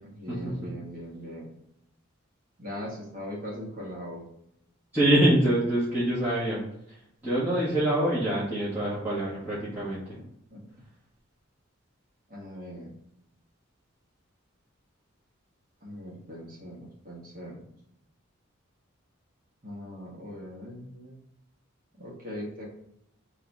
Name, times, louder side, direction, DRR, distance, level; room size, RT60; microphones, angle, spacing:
voice 1, 0.0-1.5 2.6-4.3 10.5-10.6 12.3-12.9 15.8-17.6 19.6-21.2 21.9-22.7, equal, 45° right, -3 dB, 1.2 m, -40 dB
voice 2, 4.9-6.6 7.2-10.0, right 1 dB, 10° right, -11 dB, 1.4 m, -25 dB
3.8 x 2.7 x 4.7 m, 0.75 s
head